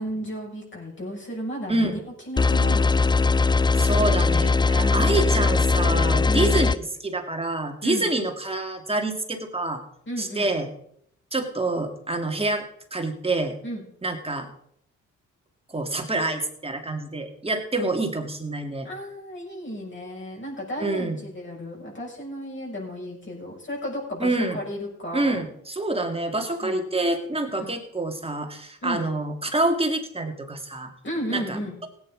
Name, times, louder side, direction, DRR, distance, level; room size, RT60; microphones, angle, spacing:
voice 1, 0.0-2.0 2.3-3.1 4.8-5.3 6.2-6.7 7.8-8.1 10.1-10.5 13.6-13.9 18.8-25.4 26.6-26.8 27.5-27.7 28.8-29.1 31.0-31.7, equal, 40° left, -3 dB, 6.5 m, -33 dB
sound 1, 2.4-6.8, left 4 dB, 15° left, 0.4 m, -20 dB
voice 2, 3.8-9.8 10.2-10.7 11.3-13.6 14.0-14.5 15.7-18.9 20.8-21.2 24.2-24.6 25.1-30.9 31.3-31.9, right 2 dB, 20° right, 4 dB, 2.4 m, -27 dB
16.5 x 9.6 x 5.0 m, 0.70 s
cardioid pair, 80°, 31 cm